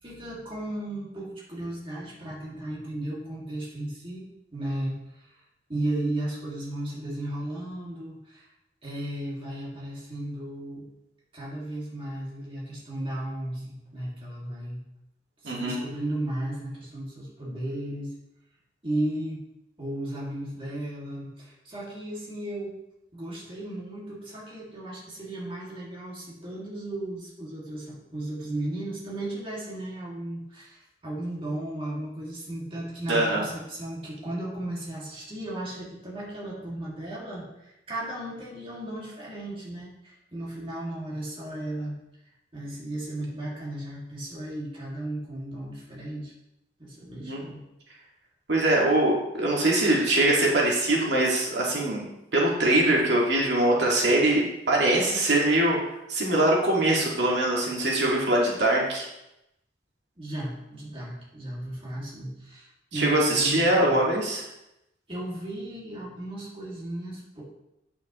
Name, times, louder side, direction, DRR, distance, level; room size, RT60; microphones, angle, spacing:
voice 1, 0.0-5.4 5.7-8.5 8.8-10.9 11.3-14.8 15.4-18.2 18.8-19.4 19.8-22.8 23.1-41.9 42.5-46.3 46.8-47.6 60.2-64.0 65.1-67.4, right 1 dB, 30° right, -5 dB, 2.2 m, -35 dB
voice 2, 15.4-15.8 33.1-33.4 47.2-47.4 48.5-52.1 52.3-55.8 56.1-59.1 62.9-64.4, right 1 dB, 75° right, -3 dB, 2.0 m, -23 dB
9.0 x 8.1 x 3.1 m, 0.88 s
head